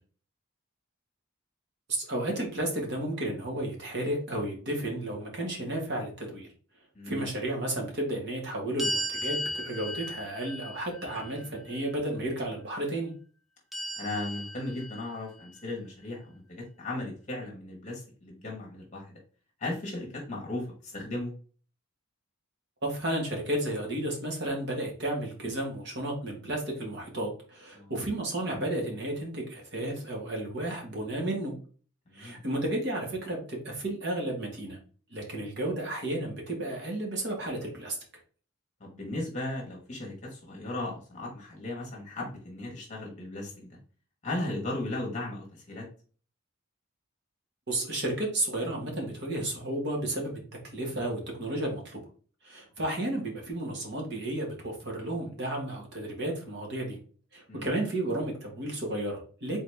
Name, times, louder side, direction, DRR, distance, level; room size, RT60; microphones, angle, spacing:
voice 1, 1.9-6.5 7.0-13.1 22.8-31.5 32.1-34.8 35.1-38.0 47.7-50.4 50.7-52.0 52.4-57.0 57.3-59.6, right 1 dB, 55° right, 0 dB, 1.6 m, -32 dB
voice 2, 6.9-7.3 14.0-19.1 19.6-21.3 27.7-27.9 32.1-32.4 38.8-43.8 44.2-45.9 57.5-57.7, left 2 dB, 35° left, -1 dB, 1.2 m, -36 dB
sound 1, 8.8-11.9 13.7-15.5, equal, ahead, 0.5 m, -36 dB
3.9 x 3.9 x 3.4 m, 0.41 s
head